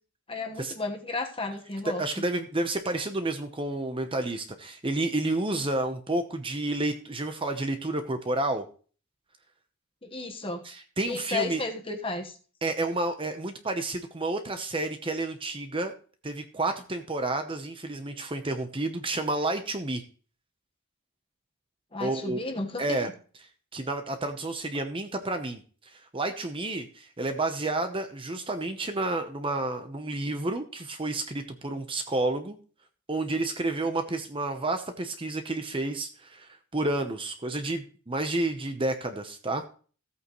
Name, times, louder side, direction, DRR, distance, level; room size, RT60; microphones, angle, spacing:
voice 1, 0.3-2.2 10.0-10.6 11.1-12.3 21.9-23.0, left 3 dB, 25° left, 4 dB, 1.4 m, -33 dB
voice 2, 1.8-8.6 10.6-11.6 12.6-15.9 16.2-20.0 22.0-22.4 22.8-23.1 23.7-25.6 25.9-32.6 33.1-39.6, right 2 dB, 25° right, 7 dB, 0.9 m, -30 dB
15.0 x 8.4 x 3.1 m, 0.40 s
head